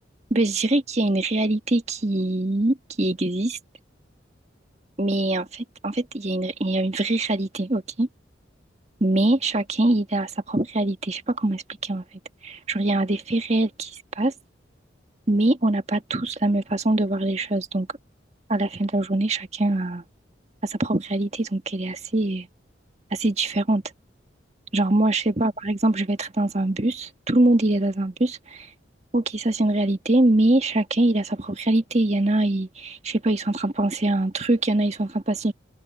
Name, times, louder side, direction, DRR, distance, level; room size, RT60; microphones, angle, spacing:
voice 1, 0.3-3.6 5.0-8.1 9.0-12.0 12.4-14.3 15.3-17.9 18.5-20.0 20.6-22.5 23.1-23.8 24.7-28.7 29.1-35.5, right 2 dB, 35° right, 1.7 m, -23 dB
open air
head